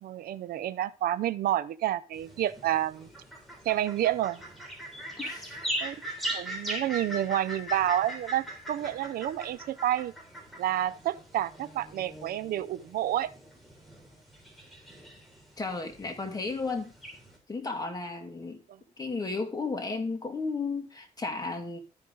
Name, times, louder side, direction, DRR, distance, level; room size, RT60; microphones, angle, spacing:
voice 1, 0.0-3.1 3.6-4.4 5.8-6.0 6.3-10.1 10.6-13.3 18.7-18.8, right 12 dB, 85° right, 0.5 m, -29 dB
sound 1, 2.1-17.4, right 1 dB, ahead, 3.7 m, -40 dB
voice 2, 5.2-5.6 15.6-16.9 17.5-18.6 19.0-21.8, left 3 dB, 25° left, 2.2 m, -34 dB
13.0 x 5.4 x 3.8 m
cardioid pair, 85°, 15 cm